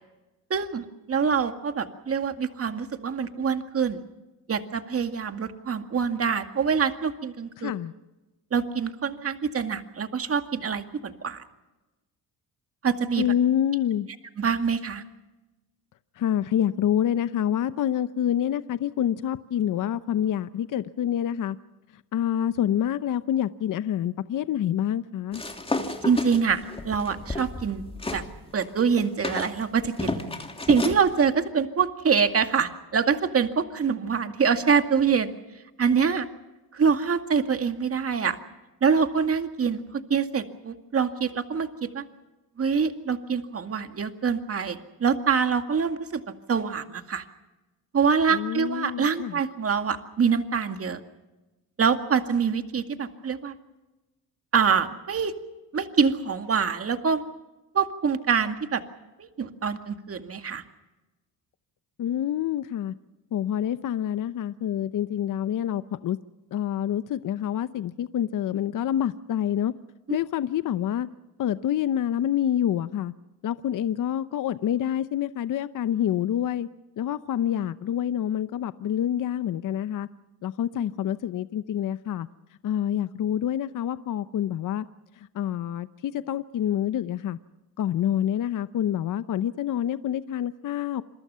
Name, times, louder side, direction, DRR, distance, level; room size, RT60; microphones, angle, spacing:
voice 1, 0.5-4.0 4.5-7.7 8.5-11.4 12.8-13.2 14.4-15.0 26.0-27.8 28.1-28.2 28.5-30.2 30.7-35.3 35.8-36.3 36.7-38.4 38.8-39.8 40.1-42.0 42.6-46.2 46.5-47.2 47.9-51.0 51.8-53.5 54.5-55.3 55.7-57.2 57.7-58.8 59.2-60.6, right 6 dB, 35° right, 7 dB, 2.1 m, -25 dB
voice 2, 7.6-7.9 13.2-14.1 16.2-21.6 22.1-25.4 48.3-49.4 62.0-62.9 63.3-66.2 66.5-69.7 70.1-71.1 71.4-73.1 73.4-76.7 77.0-80.1 80.4-82.3 82.6-84.9 85.2-87.4 87.8-91.0, left 10 dB, 55° left, 13 dB, 0.8 m, -27 dB
sound 1, 25.3-28.3 28.6-31.0, left 2 dB, 15° left, 3.0 m, -32 dB
28.0 x 22.5 x 5.7 m, 1.1 s
cardioid pair, 105°, 39 cm